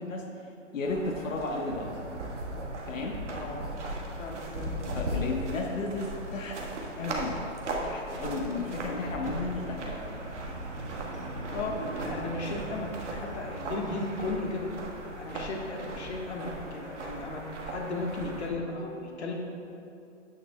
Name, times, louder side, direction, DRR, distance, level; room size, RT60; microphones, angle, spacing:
voice 1, 0.0-1.9 2.9-3.2 4.9-6.6 7.0-7.4 7.8-10.2, left 3 dB, 85° left, 1 dB, 1.2 m, -34 dB
sound 1, 0.8-18.5, right 1 dB, 65° right, 1.5 m, -37 dB
voice 2, 3.3-5.6 11.5-14.7 15.2-19.3, left 2 dB, 60° left, 0 dB, 1.4 m, -36 dB
9.3 x 9.3 x 2.2 m, 2.6 s
hypercardioid pair, 175°, 38 cm